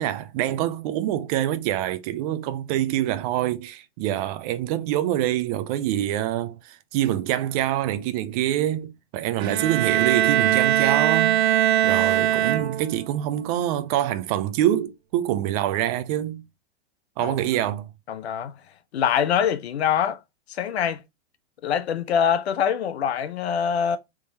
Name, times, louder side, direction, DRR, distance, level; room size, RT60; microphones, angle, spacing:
voice 1, 0.0-11.4 11.8-16.4 17.2-17.9, right 12 dB, 40° right, 0.4 m, -25 dB
Bowed string instrument, 9.4-13.1, right 12 dB, 85° right, 0.5 m, -21 dB
voice 2, 18.1-18.5 18.9-20.2 20.5-21.0 21.6-24.0, left 8 dB, 85° left, 0.7 m, -24 dB
3.6 x 3.0 x 2.7 m
hypercardioid pair, 135°, 31 cm